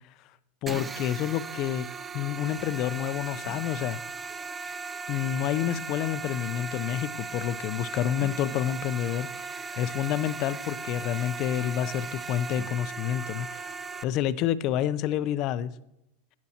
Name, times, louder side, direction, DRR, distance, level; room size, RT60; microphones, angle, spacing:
voice 1, 0.6-1.9 2.1-4.0 5.1-13.7 14.0-15.7, left 11 dB, 45° left, 15 dB, 0.5 m, -29 dB
sound 1, 0.7-14.0, right 4 dB, 15° right, 0.4 m, -37 dB
11.5 x 9.4 x 2.9 m, 0.86 s
supercardioid pair, 125°, 0 cm